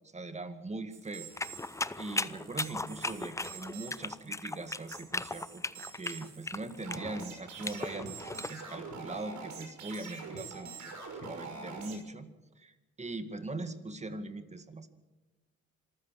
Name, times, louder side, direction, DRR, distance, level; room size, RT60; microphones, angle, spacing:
voice 1, 0.1-1.3 2.0-5.6 5.9-8.2 8.5-10.9 11.2-12.3 12.6-14.9, right 2 dB, 20° right, 10 dB, 2.0 m, -41 dB
sound 1, 0.9-12.0, right 4 dB, 70° right, 6.1 m, -46 dB
sound 2, 1.4-8.5, left 2 dB, 10° left, 0.6 m, -37 dB
26.0 x 14.5 x 7.6 m, 1.1 s
cardioid pair, 90°, 30 cm